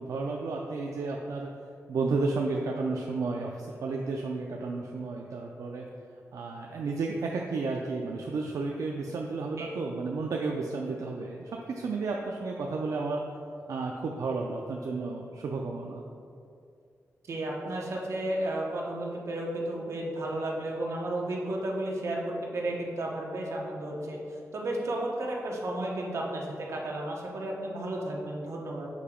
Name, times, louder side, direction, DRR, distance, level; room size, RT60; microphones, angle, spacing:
voice 1, 0.0-1.5 1.9-5.9 6.3-13.3 13.7-16.0, right 3 dB, 80° right, 0 dB, 0.4 m, -32 dB
voice 2, 17.3-28.9, right 1 dB, 60° right, -2 dB, 1.0 m, -33 dB
6.6 x 2.8 x 5.0 m, 2.4 s
wide cardioid pair, 130°, 6 cm